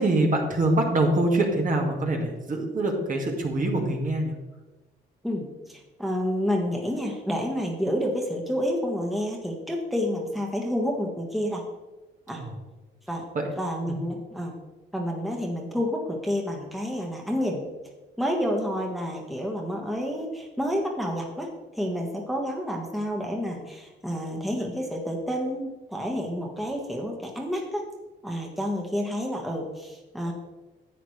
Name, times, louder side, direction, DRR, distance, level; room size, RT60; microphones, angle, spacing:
voice 1, 0.0-4.3 12.4-12.5 13.3-13.5 13.9-14.0, right 2 dB, 40° right, 1 dB, 1.9 m, -24 dB
voice 2, 5.2-11.6 12.3-12.4 13.1-13.2 13.6-14.6 14.9-17.6 18.2-21.5 21.8-27.8 28.2-30.3, equal, ahead, 0 dB, 1.5 m, -29 dB
11.0 x 8.0 x 3.3 m, 1.1 s
cardioid pair, 90°, 20 cm